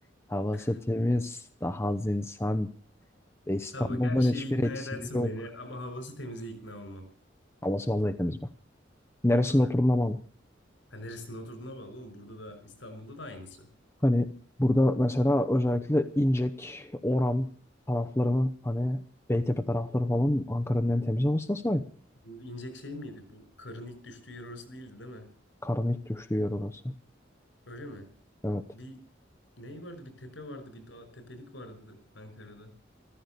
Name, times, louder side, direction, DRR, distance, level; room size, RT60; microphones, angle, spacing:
voice 1, 0.3-2.7 3.5-4.6 5.0-5.3 7.6-8.4 9.2-10.2 14.0-14.3 14.6-17.5 17.9-19.0 19.3-21.8 25.6-26.8 28.4-28.6, left 1 dB, 15° left, 7 dB, 0.8 m, -27 dB
voice 2, 3.7-7.1 9.5-9.7 10.9-13.7 22.2-25.3 27.7-28.1 28.7-29.0 29.6-32.7, left 1 dB, 75° left, 9 dB, 5.3 m, -42 dB
14.5 x 14.5 x 6.8 m, 0.43 s
head